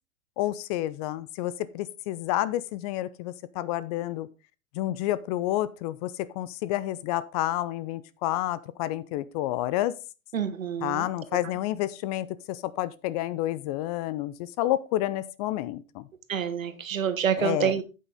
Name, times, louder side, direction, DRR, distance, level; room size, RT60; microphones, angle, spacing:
voice 1, 0.4-4.3 4.7-9.9 10.8-16.1 17.4-17.7, left 14 dB, 30° left, 17 dB, 0.5 m, -29 dB
voice 2, 10.3-11.1 16.3-17.8, right 8 dB, 75° right, 10 dB, 1.7 m, -27 dB
9.5 x 8.4 x 3.6 m, 0.30 s
figure-of-eight pair, 105°, 41 cm